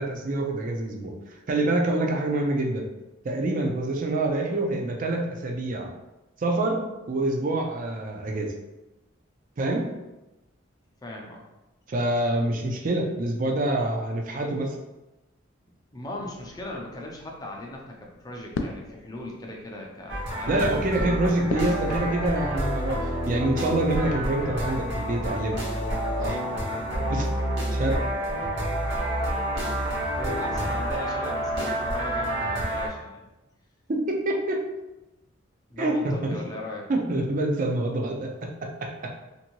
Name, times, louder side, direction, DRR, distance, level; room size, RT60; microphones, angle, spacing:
voice 1, 0.0-2.8 3.2-5.9 6.4-8.5 9.6-9.9 11.9-14.8 20.5-25.6 26.2-26.4 27.1-27.3 27.7-28.0 33.9-34.7 35.8-36.4 36.9-39.1, right 2 dB, 40° right, 2 dB, 0.4 m, -26 dB
voice 2, 11.0-11.4 15.9-22.1 28.3-28.5 30.2-33.3 35.7-36.9, left 1 dB, 20° left, -1 dB, 0.4 m, -38 dB
sound 1, 16.1-24.8, left 3 dB, 85° left, 0.3 m, -41 dB
sound 2, 20.1-32.9, right 1 dB, 60° right, 0.9 m, -28 dB
2.6 x 2.6 x 2.9 m, 1.0 s
head